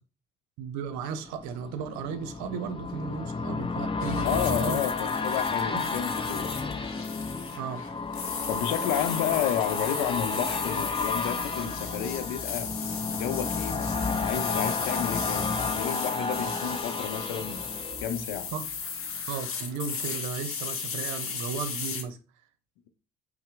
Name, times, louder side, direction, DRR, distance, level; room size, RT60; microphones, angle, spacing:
voice 1, 0.6-4.8 5.7-5.9 7.5-7.8 18.5-18.6 19.3-22.2, right 6 dB, 65° right, 0.7 m, -35 dB
sound 1, 1.0-18.8 19.2-19.3, left 4 dB, 15° left, 0.5 m, -32 dB
sound 2, 4.0-22.0, left 6 dB, 45° left, 0.9 m, -36 dB
voice 2, 4.2-6.8 8.5-12.7 13.1-17.6 18.0-18.5, left 9 dB, 70° left, 0.6 m, -31 dB
5.5 x 2.1 x 3.4 m
hypercardioid pair, 50°, 31 cm